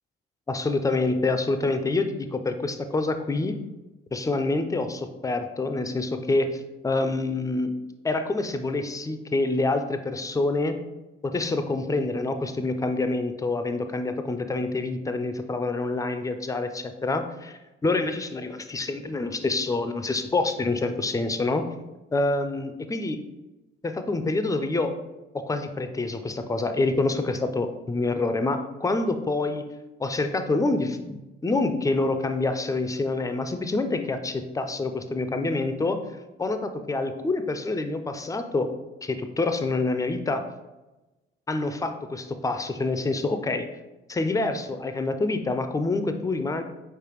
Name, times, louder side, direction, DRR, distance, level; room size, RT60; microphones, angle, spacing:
voice 1, 0.5-3.6 4.1-7.7 8.0-10.8 11.2-21.6 22.1-23.2 23.8-24.9 25.3-29.7 30.0-36.0 36.4-38.7 39.0-40.5 41.5-43.7 44.1-46.6, left 2 dB, 10° left, 8 dB, 0.4 m, -27 dB
4.6 x 3.3 x 3.0 m, 1.0 s
figure-of-eight pair, 40°, 31 cm